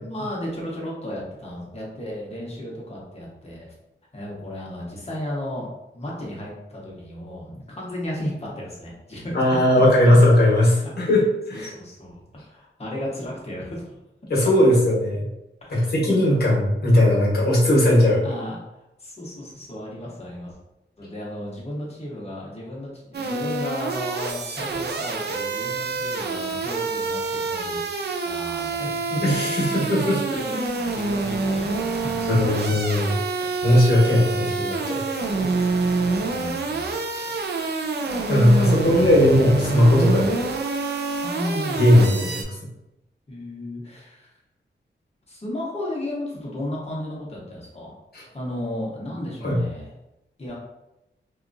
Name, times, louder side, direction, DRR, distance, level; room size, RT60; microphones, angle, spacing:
voice 1, 0.0-3.7 4.1-5.7 5.9-9.4 10.8-10.9 11.5-13.9 15.6-15.9 18.2-20.6 21.0-27.8 28.2-29.2 30.4-32.4 33.4-33.7 34.0-34.7 35.4-37.7 41.2-42.3 43.3-44.3 45.3-47.9 48.3-49.9 50.4-50.5, left 1 dB, 30° left, -4 dB, 1.0 m, -34 dB
voice 2, 9.3-11.7 14.3-15.2 15.7-18.2 29.2-30.4 32.3-33.2 33.6-35.0 37.1-37.4 38.3-40.3 41.7-42.4 48.1-48.2 49.4-49.6, left 1 dB, 55° left, -5 dB, 1.2 m, -18 dB
sound 1, 23.1-42.4, right 3 dB, 60° right, 0.4 m, -27 dB
2.8 x 2.4 x 2.6 m, 0.91 s
wide cardioid pair, 100°, 20 cm